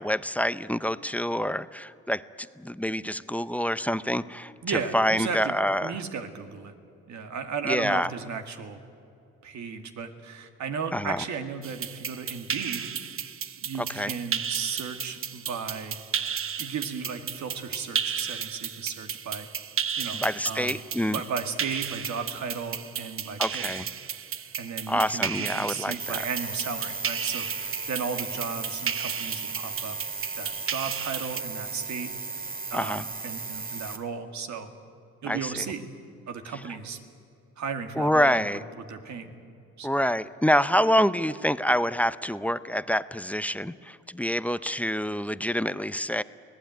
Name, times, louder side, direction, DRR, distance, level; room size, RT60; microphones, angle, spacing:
voice 1, 0.0-2.2 2.6-4.5 4.9-6.0 7.6-8.1 10.9-11.2 13.9-14.1 20.1-21.2 23.4-23.9 24.9-26.2 32.7-33.0 35.3-35.6 38.0-38.6 39.8-46.2, equal, 5° left, 14 dB, 0.6 m, -26 dB
voice 2, 4.6-6.7 7.1-8.8 9.4-12.9 13.6-16.0 16.6-19.5 20.0-20.8 21.1-23.8 24.6-30.0 30.4-32.1 32.7-34.7 35.2-35.8 36.3-37.0 37.6-39.3 39.8-40.0, right 6 dB, 65° right, 6 dB, 2.2 m, -35 dB
sound 1, 11.6-31.4, right 7 dB, 45° right, 1.0 m, -34 dB
sound 2, 26.0-34.0, right 4 dB, 30° right, 2.5 m, -36 dB
24.0 x 17.5 x 9.4 m, 2.5 s
cardioid pair, 90°, 30 cm